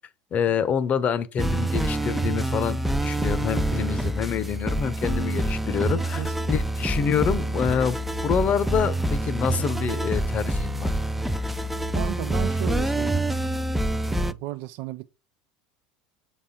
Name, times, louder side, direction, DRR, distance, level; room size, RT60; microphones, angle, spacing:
voice 1, 0.3-10.9, left 7 dB, 40° left, 0.8 m, -27 dB
sound 1, 1.4-14.3, right 1 dB, 5° right, 0.5 m, -26 dB
voice 2, 11.9-13.3 14.1-15.1, right 16 dB, 65° right, 0.4 m, -34 dB
7.5 x 4.2 x 3.7 m
hypercardioid pair, 95°, 4 cm